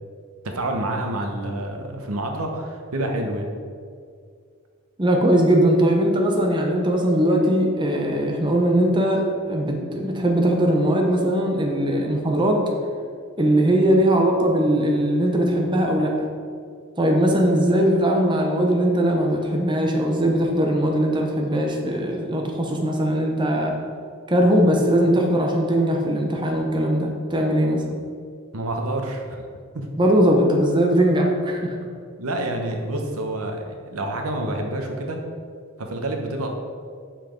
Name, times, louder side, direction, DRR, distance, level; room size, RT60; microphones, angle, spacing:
voice 1, 0.4-3.5 28.5-29.5 29.7-29.9 32.2-35.2 35.8-36.5, right 1 dB, 80° right, 3 dB, 1.0 m, -28 dB
voice 2, 5.0-12.6 13.4-16.2 17.0-23.8 24.3-27.8 30.0-31.7, right 1 dB, 20° right, 1 dB, 0.8 m, -20 dB
7.2 x 5.8 x 5.1 m, 2.2 s
head